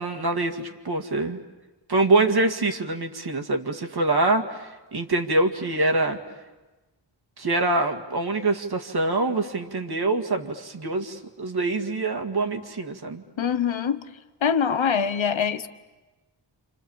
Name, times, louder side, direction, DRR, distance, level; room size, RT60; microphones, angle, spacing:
voice 1, 0.0-1.4 1.9-6.2 7.4-13.2, right 2 dB, 55° right, 5 dB, 2.2 m, -25 dB
voice 2, 13.4-14.0 14.4-15.7, left 7 dB, 80° left, 10 dB, 1.2 m, -23 dB
29.0 x 28.5 x 7.3 m, 1.2 s
wide cardioid pair, 125°, 45 cm